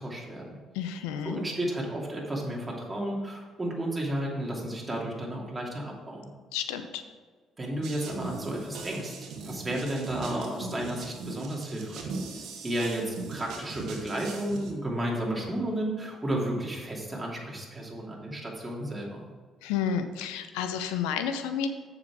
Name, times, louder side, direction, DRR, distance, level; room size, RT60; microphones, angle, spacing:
voice 1, 0.0-0.6 1.2-6.3 7.6-9.1 9.4-12.2 12.6-19.3, right 1 dB, 20° right, -3 dB, 2.8 m, -32 dB
voice 2, 0.7-1.4 6.5-7.0 19.6-21.7, left 8 dB, 90° left, 9 dB, 0.7 m, -31 dB
sound 1, 7.8-14.7, right 3 dB, 75° right, 1.4 m, -40 dB
7.3 x 6.8 x 4.8 m, 1.5 s
supercardioid pair, 65°, 0 cm